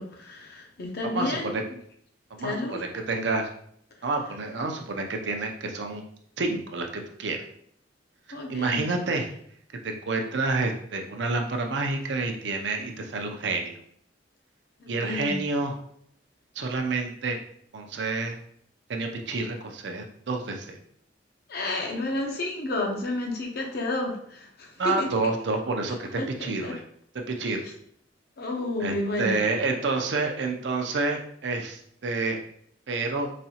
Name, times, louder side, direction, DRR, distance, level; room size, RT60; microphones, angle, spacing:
voice 1, 0.0-1.5 2.4-2.8 8.3-8.8 14.8-15.4 21.5-25.1 26.2-26.7 28.4-29.4, left 2 dB, 60° left, 1 dB, 0.7 m, -31 dB
voice 2, 1.1-1.6 2.3-3.5 4.0-6.0 6.4-7.4 8.5-9.3 9.8-13.8 14.9-15.8 16.6-17.4 17.7-18.4 18.9-20.8 24.8-26.8 27.1-27.7 28.8-32.4 32.9-33.3, right 3 dB, 70° right, 3 dB, 0.5 m, -29 dB
4.1 x 2.3 x 2.8 m, 0.66 s
head